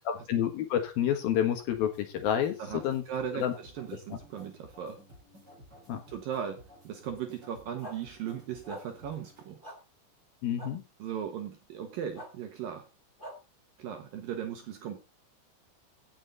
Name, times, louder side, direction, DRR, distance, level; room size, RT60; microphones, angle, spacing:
voice 1, 0.1-3.0 3.4-3.5 5.9-6.0 10.4-10.8, left 10 dB, 65° left, 6 dB, 2.8 m, -29 dB
sound 1, 1.7-9.5, equal, 20° right, 6.7 m, -55 dB
voice 2, 3.1-5.0 6.1-9.8 11.0-12.9 13.8-15.0, right 8 dB, 70° right, 6 dB, 2.4 m, -38 dB
sound 2, 7.8-8.0 8.7-8.8 9.6-9.8 10.6-10.7 12.1-12.3 13.2-13.3, equal, 35° left, 0.7 m, -42 dB
16.0 x 7.5 x 4.0 m, 0.28 s
omnidirectional pair, 5.4 m